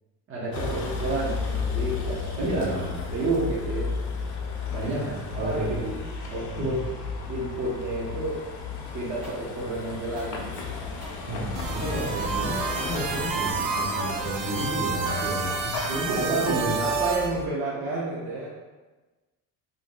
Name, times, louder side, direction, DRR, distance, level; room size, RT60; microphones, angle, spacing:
voice 1, 0.3-2.7 3.1-3.9 4.7-6.0 6.3-6.8 7.3-8.4 8.9-10.8 14.2-14.7 15.4-15.5 16.0-18.6, right 2 dB, 35° right, -6 dB, 0.6 m, -31 dB
Vehicle, 0.5-17.5, left 4 dB, 50° left, 0.6 m, -34 dB
voice 2, 2.4-3.0 4.8-5.8 6.6-6.7 11.3-16.8, equal, 55° right, -3 dB, 1.1 m, -31 dB
sound 1, 9.2-16.3, right 1 dB, 5° right, 0.7 m, -47 dB
sound 2, 11.5-17.3, right 5 dB, 75° right, 0.7 m, -29 dB
2.7 x 2.6 x 3.7 m, 1.2 s
cardioid pair, 135°, 38 cm